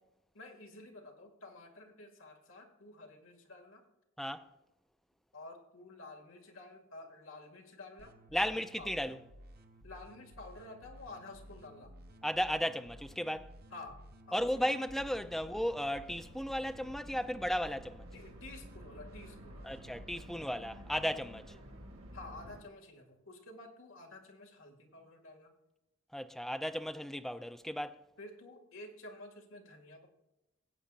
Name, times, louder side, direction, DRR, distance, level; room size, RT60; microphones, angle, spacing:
voice 1, 0.3-3.9 5.3-9.1 9.8-12.0 13.7-14.8 18.1-19.8 20.9-21.1 22.1-25.5 28.2-30.1, left 2 dB, 70° left, 2.2 m, -51 dB
voice 2, 4.2-4.5 8.3-9.2 12.2-13.5 14.3-18.1 19.6-21.4 26.1-28.0, equal, ahead, 0.4 m, -35 dB
sound 1, 8.0-20.2, equal, 50° right, 1.0 m, -55 dB
sound 2, 14.9-22.6, equal, 80° right, 2.1 m, -52 dB
18.5 x 8.5 x 2.5 m
head